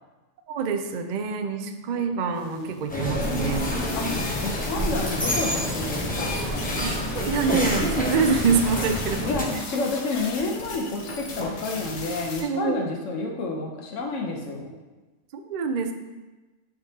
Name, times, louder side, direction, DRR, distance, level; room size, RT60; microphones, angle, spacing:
voice 1, 0.5-3.7 6.8-9.5 12.4-12.9 15.3-15.9, right 5 dB, 80° right, 6 dB, 0.4 m, -26 dB
voice 2, 2.3-2.8 3.2-6.4 9.3-14.7, left 3 dB, 65° left, 1 dB, 1.2 m, -30 dB
sound 1, 2.4-12.4, left 3 dB, 80° left, 1.3 m, -37 dB
sound 2, 2.9-9.4, equal, 10° left, 0.6 m, -28 dB
sound 3, 5.6-6.4 7.2-7.3 8.2-9.0 9.5-9.7 10.6-11.6, left 1 dB, 40° left, 0.8 m, -39 dB
10.0 x 3.8 x 2.8 m, 1.2 s
omnidirectional pair, 1.4 m